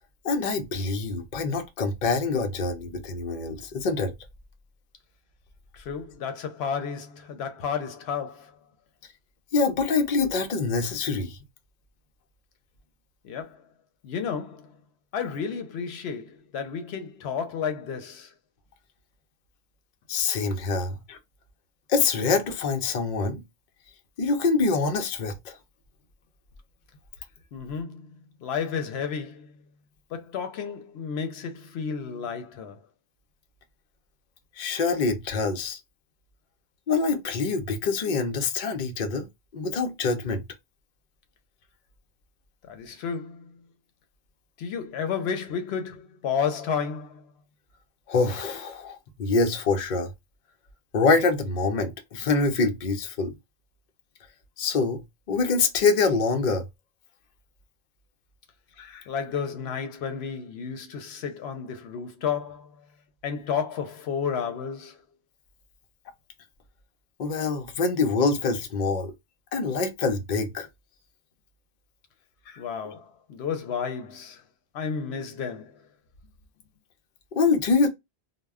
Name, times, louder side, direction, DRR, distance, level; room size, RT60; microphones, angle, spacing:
voice 1, 0.2-4.1 9.5-11.4 20.1-21.2 21.9-23.4 24.2-25.6 34.6-35.8 36.9-39.3 39.5-40.4 48.1-50.1 50.9-53.3 54.6-55.0 55.3-56.6 58.8-59.0 67.2-69.1 69.5-70.7 72.5-72.6 77.4-77.9, left 4 dB, 55° left, 0.7 m, -25 dB
voice 2, 5.8-8.6 13.2-13.6 14.0-14.8 15.1-18.3 27.5-29.6 30.1-32.8 42.6-43.6 44.6-47.3 59.1-62.9 63.2-65.0 72.6-74.4 74.7-75.9, left 6 dB, 85° left, 0.8 m, -32 dB
2.1 x 2.1 x 3.4 m
omnidirectional pair, 1.1 m